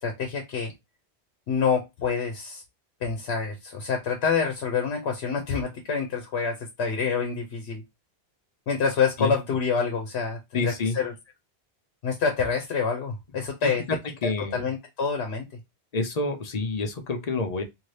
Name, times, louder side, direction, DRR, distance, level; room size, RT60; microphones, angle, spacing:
voice 1, 0.0-0.7 1.5-2.6 3.0-7.8 8.7-11.1 12.0-13.8 14.5-15.5, left 5 dB, 80° left, 1.0 m, -27 dB
voice 2, 10.5-11.0 13.6-14.0 14.2-14.6 15.9-17.6, left 3 dB, 45° left, 0.6 m, -28 dB
2.7 x 2.7 x 3.2 m
omnidirectional pair, 1.1 m